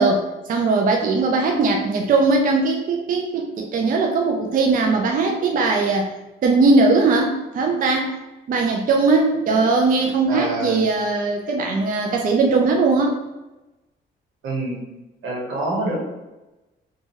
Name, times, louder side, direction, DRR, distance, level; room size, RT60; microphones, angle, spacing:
voice 1, 0.0-6.1 6.4-8.2 8.5-13.2, right 3 dB, 45° right, 2 dB, 0.4 m, -19 dB
voice 2, 10.3-10.9 14.4-14.8 15.2-15.9, right 2 dB, 90° right, -4 dB, 1.1 m, -26 dB
2.6 x 2.3 x 3.0 m, 1.0 s
cardioid pair, 90°, 20 cm